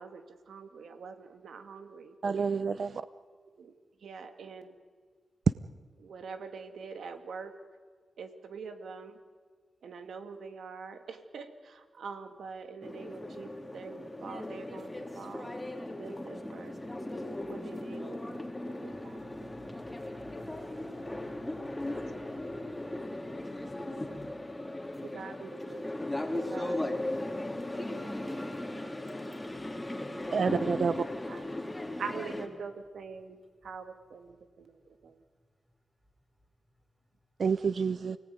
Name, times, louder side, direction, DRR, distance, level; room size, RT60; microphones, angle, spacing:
voice 1, 0.0-2.8 3.6-3.7 4.0-4.8 6.0-7.6 8.2-9.2 9.8-15.5 16.0-16.8 17.4-19.2 21.1-21.2 25.0-26.1 26.3-27.5 30.1-30.3 31.3-31.5 32.0-35.2, right 5 dB, 85° right, 2.4 m, -45 dB
voice 2, 2.2-2.9 30.3-31.1 37.4-38.2, right 5 dB, 65° right, 0.7 m, -28 dB
sound 1, 12.8-32.5, left 1 dB, 15° left, 3.3 m, -37 dB
voice 3, 18.7-24.5, left 1 dB, 20° right, 7.5 m, -54 dB
29.0 x 18.5 x 9.5 m
cardioid pair, 75°, 0 cm